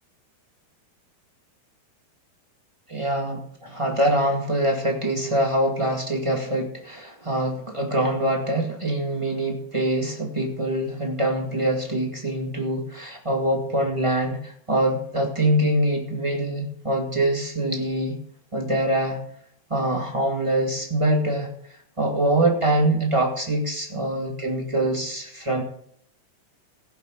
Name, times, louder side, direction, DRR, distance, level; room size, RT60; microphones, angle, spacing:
voice 1, 2.9-18.2 18.5-19.2 19.7-21.5 22.0-25.6, right 1 dB, 15° right, 0 dB, 1.0 m, -24 dB
17.5 x 9.4 x 4.0 m, 0.64 s
omnidirectional pair, 4.5 m